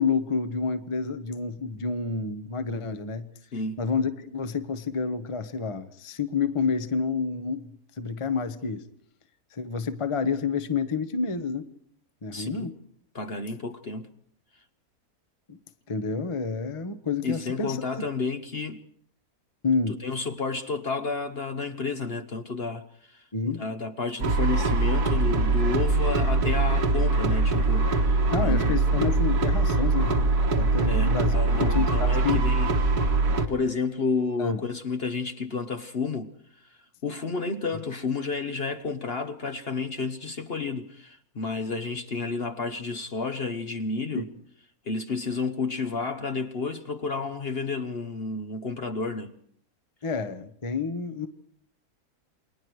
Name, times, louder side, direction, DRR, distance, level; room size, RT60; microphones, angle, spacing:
voice 1, 0.0-3.3 3.8-7.7 8.0-8.8 9.5-11.7 12.2-12.8 15.5-15.6 15.9-18.0 19.6-20.0 23.3-23.6 28.3-32.4 34.4-34.6 44.1-44.2 50.0-51.3, left 5 dB, 25° left, 1.0 m, -29 dB
voice 2, 12.3-12.7 13.1-14.1 17.2-18.8 20.0-28.7 30.9-32.7 33.5-36.3 37.0-44.3 44.8-49.3, left 4 dB, 45° left, 1.1 m, -31 dB
sound 1, 24.2-33.5, right 3 dB, 85° right, 2.1 m, -23 dB
29.0 x 21.5 x 4.8 m
omnidirectional pair, 1.6 m